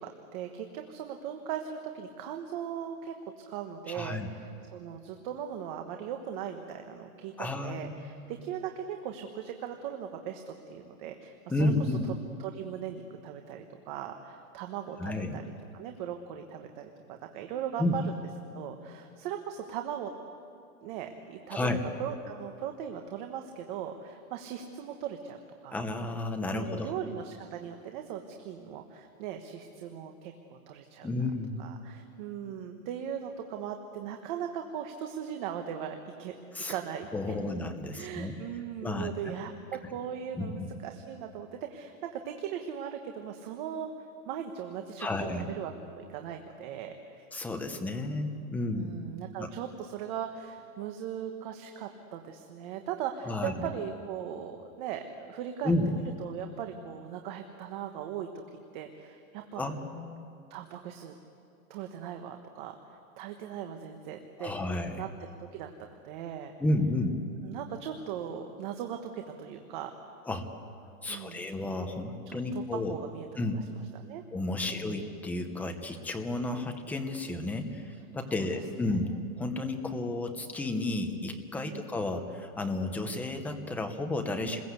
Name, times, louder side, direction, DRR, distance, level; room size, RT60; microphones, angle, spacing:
voice 1, 0.0-12.0 12.4-15.4 15.7-18.0 18.5-20.1 20.8-21.7 22.0-25.7 26.5-31.1 31.6-36.3 36.7-37.3 37.9-43.9 44.3-47.2 48.7-58.3 58.7-59.7 60.5-61.1 61.7-64.7 65.0-66.5 67.4-69.9 71.1-71.5 72.3-73.3 73.5-73.6 73.9-74.2 74.5-74.9 78.3-78.6 79.1-79.2 81.7-81.9 84.4-84.6, right 9 dB, 35° right, 5 dB, 1.3 m, -39 dB
voice 2, 3.9-4.3 7.4-8.4 11.5-12.1 15.0-15.4 17.8-18.0 21.5-21.8 25.7-26.9 31.0-31.7 36.5-36.8 37.1-38.3 38.8-39.1 40.3-40.5 45.0-45.5 47.3-48.9 49.4-49.5 53.3-53.7 55.6-55.9 59.6-60.3 64.4-65.0 66.6-67.2 70.3-70.5 71.0-72.9 73.4-73.7 74.3-84.6, left 2 dB, 5° left, 5 dB, 0.8 m, -32 dB
28.0 x 21.0 x 8.2 m, 2.6 s
supercardioid pair, 170°, 43 cm